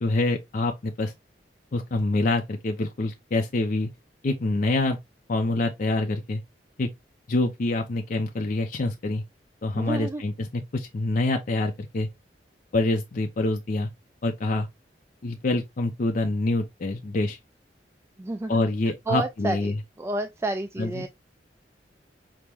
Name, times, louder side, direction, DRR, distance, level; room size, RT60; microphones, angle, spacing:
voice 1, 0.0-1.1 1.7-3.9 4.2-5.0 5.3-6.4 6.8-6.9 7.3-9.2 9.6-12.1 12.7-13.9 14.2-14.7 15.2-17.4 18.5-19.7 20.8-21.0, left 2 dB, 50° left, 0.5 m, -26 dB
voice 2, 9.7-10.2 18.2-18.6 19.1-21.1, right 2 dB, 15° right, 0.3 m, -30 dB
5.9 x 2.1 x 3.4 m
head